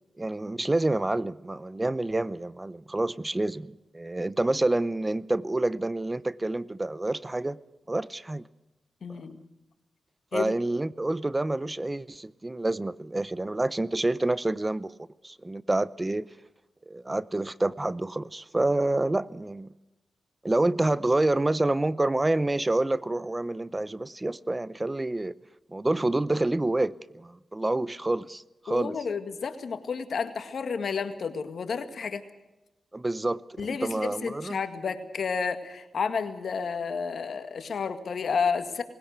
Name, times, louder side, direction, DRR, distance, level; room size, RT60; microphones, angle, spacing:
voice 1, 0.2-7.6 7.9-8.4 10.3-14.9 15.2-16.3 16.9-19.7 20.4-25.3 25.7-29.0 32.9-34.6, right 2 dB, 25° right, 0.8 m, -28 dB
voice 2, 9.0-9.4 10.3-10.5 28.7-32.2 33.6-38.8, left 5 dB, 70° left, 1.9 m, -31 dB
20.0 x 17.5 x 8.1 m
supercardioid pair, 45°, 0 cm